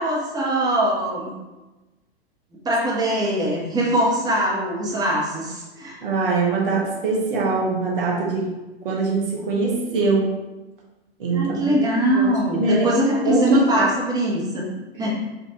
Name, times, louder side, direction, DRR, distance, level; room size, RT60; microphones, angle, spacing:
voice 1, 0.0-1.4 2.6-6.0 11.3-14.7 15.0-15.1, right 1 dB, 10° right, -5 dB, 1.0 m, -22 dB
voice 2, 6.0-8.5 8.8-10.3 11.2-12.9 13.2-13.9 15.0-15.1, right 3 dB, 60° right, -3 dB, 1.1 m, -23 dB
5.5 x 2.6 x 2.8 m, 1.1 s
figure-of-eight pair, 90°, 30 cm